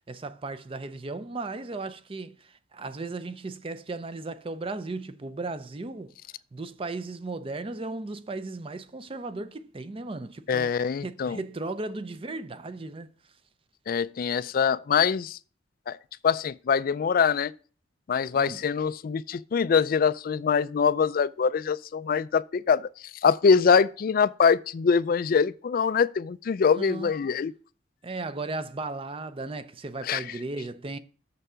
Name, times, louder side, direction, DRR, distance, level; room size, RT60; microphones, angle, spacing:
voice 1, 0.1-6.1 6.5-10.7 11.0-13.1 18.3-18.6 26.8-27.1 28.0-31.0, right 3 dB, 30° right, 0.5 m, -36 dB
voice 2, 10.5-11.4 13.9-15.4 15.9-16.0 16.2-17.5 18.1-22.9 23.2-27.5 30.0-30.4, left 6 dB, 45° left, 0.3 m, -24 dB
6.8 x 6.7 x 4.9 m
head